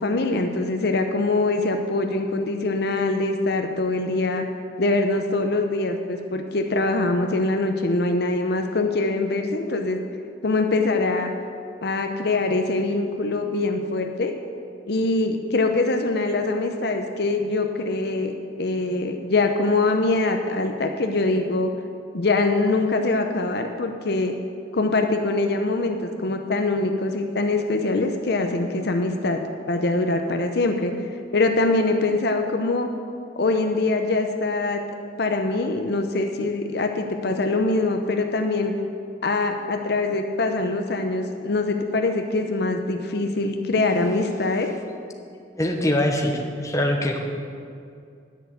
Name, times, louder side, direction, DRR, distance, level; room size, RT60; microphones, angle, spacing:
voice 1, 0.0-4.4 4.8-10.0 10.4-11.3 11.8-14.4 14.8-18.3 18.6-21.7 22.1-24.3 24.7-29.4 29.7-30.9 31.3-32.9 33.3-34.8 35.2-38.7 39.2-44.7, left 2 dB, 65° left, 5 dB, 0.7 m, -23 dB
voice 2, 45.6-47.2, left 1 dB, 20° left, 2 dB, 1.0 m, -23 dB
10.0 x 6.8 x 7.8 m, 2.4 s
head